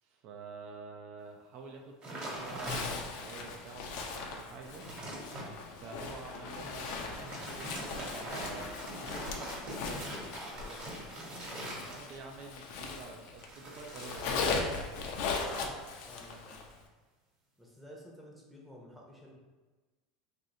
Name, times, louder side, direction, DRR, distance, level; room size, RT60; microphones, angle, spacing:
voice 1, 0.0-4.8 5.7-9.4 9.7-10.1 11.8-14.6 15.4-15.9, right 4 dB, 55° right, 2 dB, 0.4 m, -48 dB
sound 1, 2.0-3.3 3.8-3.9 4.4-5.5 7.1-12.3 13.4-15.1 15.3-15.7, right 1 dB, 35° right, 1.2 m, -42 dB
Zipper (clothing), 2.6-13.5 13.8-16.7, left 4 dB, 60° left, 0.5 m, -39 dB
voice 2, 16.1-16.7 17.6-19.3, equal, ahead, -3 dB, 0.7 m, -52 dB
2.6 x 2.6 x 4.2 m, 1.3 s
supercardioid pair, 130°, 3 cm